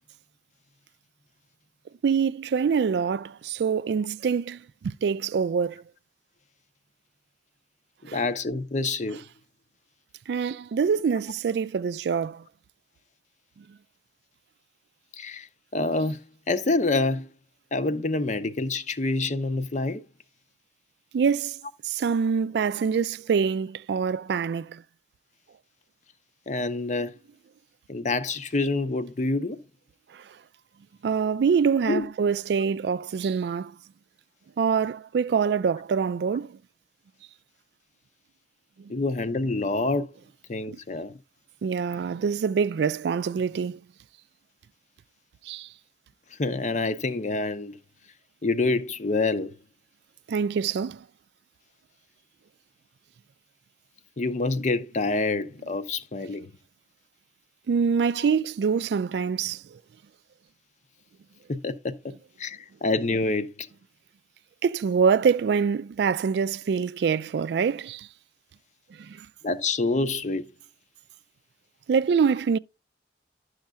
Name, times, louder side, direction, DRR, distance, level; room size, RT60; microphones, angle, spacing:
voice 1, 2.0-5.8 8.1-8.2 10.3-12.4 21.1-21.6 21.8-24.8 30.1-30.2 31.0-33.7 34.6-36.6 38.8-38.9 41.6-43.8 45.5-45.7 50.3-51.0 57.7-59.8 64.6-68.1 69.0-69.3 71.9-72.6, right 6 dB, 70° right, 0.3 m, -25 dB
voice 2, 8.1-9.2 15.2-15.5 15.7-17.3 17.7-20.0 26.5-27.1 27.9-29.6 31.9-32.1 38.9-40.1 40.5-41.1 46.4-47.8 48.4-49.5 54.2-56.5 58.1-58.3 61.5-62.1 62.4-63.7 69.4-70.5, left 3 dB, 45° left, 0.6 m, -27 dB
11.5 x 6.4 x 2.3 m
head